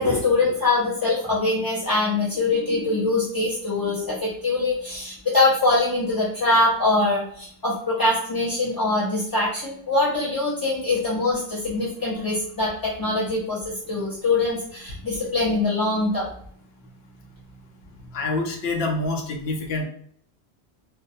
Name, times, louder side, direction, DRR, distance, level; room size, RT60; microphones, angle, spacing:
voice 1, 0.0-16.2, left 2 dB, 30° left, -8 dB, 0.4 m, -23 dB
voice 2, 18.1-19.9, left 2 dB, 65° left, 2 dB, 0.8 m, -26 dB
2.2 x 2.2 x 2.6 m, 0.63 s
omnidirectional pair, 1.2 m